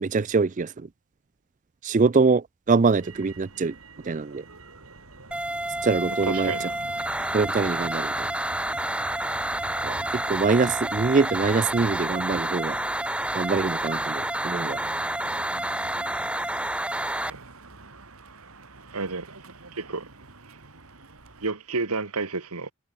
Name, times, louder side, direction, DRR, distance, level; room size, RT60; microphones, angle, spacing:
voice 1, 0.0-0.9 1.8-3.7 4.0-4.4 5.8-6.7 7.3-8.3 9.8-12.8 13.3-14.8, right 4 dB, 35° right, 0.4 m, -24 dB
Motor vehicle (road), 3.0-21.5, right 3 dB, 70° right, 2.8 m, -45 dB
sound 1, 5.3-17.3, right 1 dB, 5° right, 2.4 m, -29 dB
voice 2, 6.1-6.8 17.3-17.4 18.9-19.4 19.7-20.1 21.4-22.7, right 3 dB, 85° right, 1.8 m, -31 dB
head